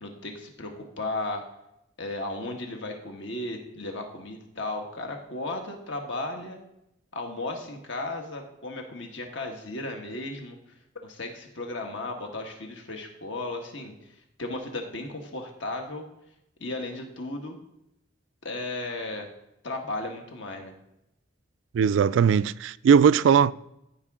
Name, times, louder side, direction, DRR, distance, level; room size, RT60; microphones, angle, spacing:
voice 1, 0.0-1.4 2.0-6.6 7.1-10.6 11.0-14.1 14.4-16.1 16.6-17.6 18.4-19.3 19.6-20.7, left 2 dB, 70° left, 1.5 m, -35 dB
voice 2, 21.7-23.5, right 7 dB, 70° right, 0.3 m, -19 dB
14.0 x 5.2 x 3.7 m
head